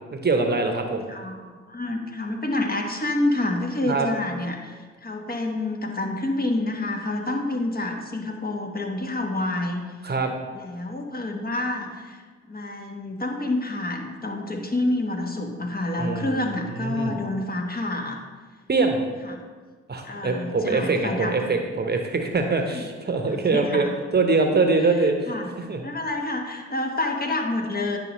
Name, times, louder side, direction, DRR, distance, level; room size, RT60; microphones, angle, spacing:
voice 1, 0.1-1.0 3.9-4.1 10.0-10.3 16.0-16.4 16.7-17.1 18.7-19.0 19.9-23.9 24.1-25.3 25.6-25.8, right 3 dB, 35° right, 4 dB, 1.0 m, -23 dB
voice 2, 1.1-9.8 10.5-12.2 12.5-18.2 19.3-19.4 20.0-21.6 22.7-22.8 23.5-23.9 25.3-25.5 25.8-28.0, left 2 dB, 30° left, 2 dB, 1.3 m, -28 dB
9.6 x 5.1 x 3.1 m, 1.5 s
supercardioid pair, 50°, 30 cm